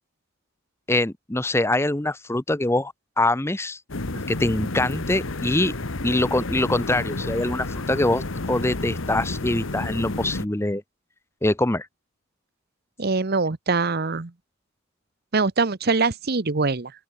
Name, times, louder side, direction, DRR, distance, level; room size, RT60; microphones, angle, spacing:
voice 1, 0.9-3.8 4.3-5.7 6.0-10.8 11.4-11.9, left 1 dB, 10° left, 0.8 m, -24 dB
sound 1, 3.9-10.4, left 2 dB, 70° left, 1.4 m, -31 dB
voice 2, 13.0-14.3 15.3-16.9, right 4 dB, 50° right, 0.9 m, -23 dB
open air
head